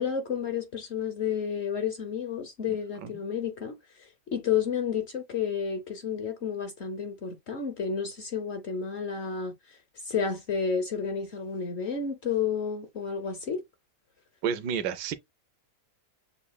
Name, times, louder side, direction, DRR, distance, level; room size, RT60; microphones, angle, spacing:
voice 1, 0.0-9.8 10.0-13.6, left 6 dB, 55° left, 0.8 m, -31 dB
voice 2, 14.4-15.1, right 7 dB, 80° right, 1.2 m, -30 dB
7.0 x 2.6 x 2.3 m
omnidirectional pair, 1.8 m